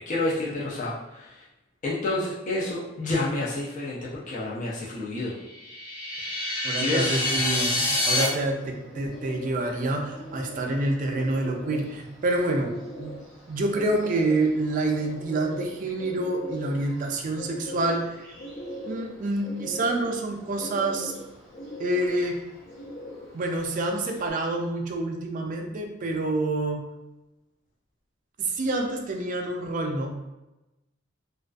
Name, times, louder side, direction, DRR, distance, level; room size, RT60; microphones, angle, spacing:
voice 1, 0.1-1.4 1.8-5.3 6.2-7.0, left 2 dB, 40° left, -6 dB, 0.4 m, -29 dB
sound 1, 5.5-8.3, left 1 dB, 55° left, 1.3 m, -26 dB
voice 2, 6.6-13.1 13.5-18.2 18.9-21.1 21.8-22.4 23.3-26.8 28.4-30.1, right 2 dB, 40° right, 3 dB, 0.3 m, -27 dB
Bird, 7.0-24.3, equal, 80° left, 0.9 m, -41 dB
2.4 x 2.2 x 2.3 m, 1.0 s
head